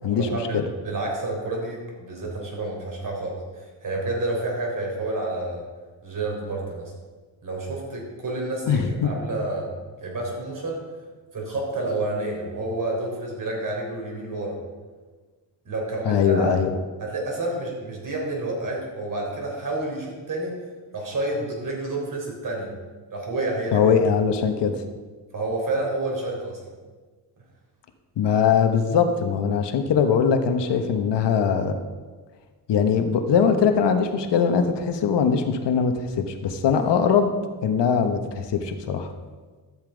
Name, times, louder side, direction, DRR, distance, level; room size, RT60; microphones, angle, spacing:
voice 1, 0.0-5.6 6.0-6.9 7.4-9.7 10.0-10.8 11.3-14.6 15.7-16.5 17.0-20.6 20.9-22.7 23.1-23.9 25.3-26.6, right 2 dB, 45° right, -1 dB, 3.9 m, -29 dB
voice 2, 8.7-9.1 16.0-16.7 23.7-24.7 28.2-31.8 32.7-35.9 36.3-37.3 37.6-39.1, left 6 dB, 70° left, 6 dB, 1.3 m, -21 dB
12.5 x 7.4 x 5.1 m, 1.4 s
cardioid pair, 100°, 44 cm